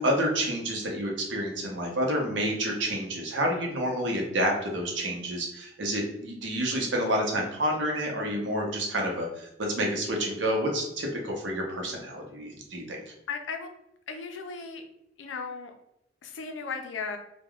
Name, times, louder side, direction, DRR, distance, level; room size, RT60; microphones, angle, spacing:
voice 1, 0.0-13.0, equal, 70° right, 0 dB, 0.7 m, -29 dB
voice 2, 13.3-13.7 14.1-14.8 15.2-15.7 16.2-17.2, left 5 dB, 90° left, 6 dB, 0.4 m, -36 dB
3.3 x 2.2 x 2.3 m, 0.82 s
head